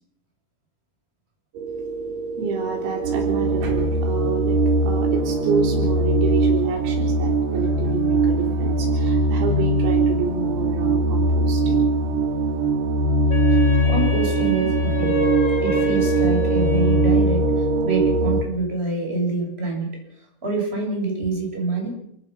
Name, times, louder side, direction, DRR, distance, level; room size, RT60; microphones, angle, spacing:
sound 1, 1.6-18.4, right 2 dB, 55° right, 2.7 m, -21 dB
voice 1, 2.4-11.9, right 4 dB, 85° right, 3 dB, 6.3 m, -28 dB
Wind instrument woodwind instrument, 13.3-17.4, left 1 dB, 15° left, 3.0 m, -31 dB
voice 2, 13.9-15.2 15.6-20.0 20.4-21.9, right 3 dB, 10° right, 0 dB, 7.6 m, -26 dB
28.5 x 16.5 x 6.1 m, 0.71 s
omnidirectional pair, 5.9 m